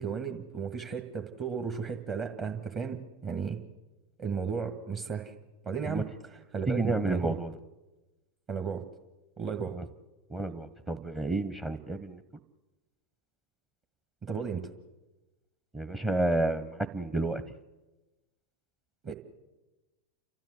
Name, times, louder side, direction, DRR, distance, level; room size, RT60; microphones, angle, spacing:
voice 1, 0.0-3.6 4.2-5.3 5.6-7.4 8.5-8.8 9.4-9.8 14.2-14.7 19.0-19.1, right 6 dB, 30° right, 4 dB, 1.8 m, -34 dB
voice 2, 6.7-7.5 9.8-9.9 10.3-12.2 15.7-17.4, right 2 dB, 15° right, 15 dB, 1.0 m, -30 dB
30.0 x 13.5 x 8.1 m, 1.1 s
figure-of-eight pair, 90°, 0 cm